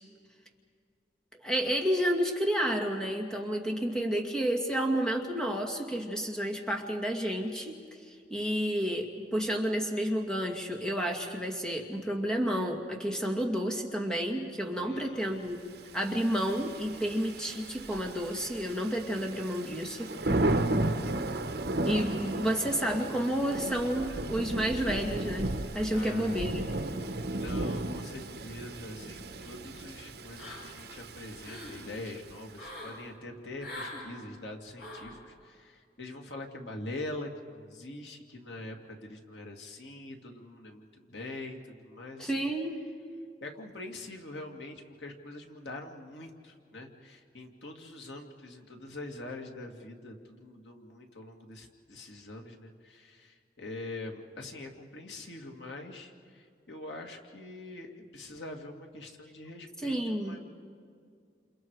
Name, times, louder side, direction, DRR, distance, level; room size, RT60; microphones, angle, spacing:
voice 1, 1.4-7.8 8.3-15.6 15.9-20.4 21.9-26.6 42.2-42.9 59.8-60.4, equal, 5° left, 2 dB, 2.1 m, -30 dB
voice 2, 14.8-15.7 25.9-26.6 26.9-42.5 43.4-60.4, left 2 dB, 85° left, 2 dB, 2.4 m, -44 dB
Thunder / Rain, 15.9-32.5, right 1 dB, 65° right, 1.3 m, -34 dB
sound 1, 30.4-30.9 31.2-31.8 32.5-33.0 33.6-34.1 34.8-35.1, left 2 dB, 65° left, 7.8 m, -43 dB
29.5 x 28.0 x 4.8 m, 2.1 s
head